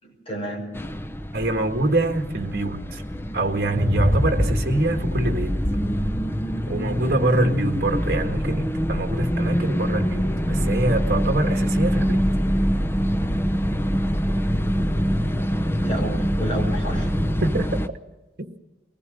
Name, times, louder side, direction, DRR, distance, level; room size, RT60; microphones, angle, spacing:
voice 1, 0.0-0.7 15.8-17.1, right 1 dB, 35° left, 5.8 m, -31 dB
sound 1, 0.7-17.9, equal, 15° left, 0.7 m, -24 dB
voice 2, 1.3-3.0 3.3-5.6 6.7-12.2 17.4-17.8 18.4-18.6, right 2 dB, 55° right, 1.9 m, -25 dB
23.0 x 18.5 x 6.6 m
head